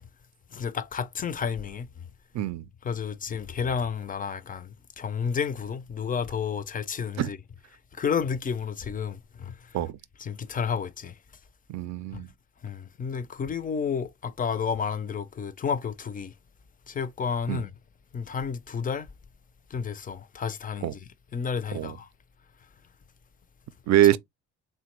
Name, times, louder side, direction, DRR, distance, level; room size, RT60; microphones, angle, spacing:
voice 1, 0.5-1.9 2.8-7.4 7.9-9.5 10.2-11.1 12.1-12.2 12.6-16.3 16.9-17.7 18.1-19.1 19.7-21.0 21.3-22.1, left 6 dB, 30° left, 0.4 m, -31 dB
voice 2, 11.7-12.3 17.5-17.6 20.8-20.9 21.7-22.0 23.9-24.2, right 12 dB, 65° right, 0.4 m, -24 dB
3.4 x 2.1 x 3.0 m
cardioid pair, 90°, 30 cm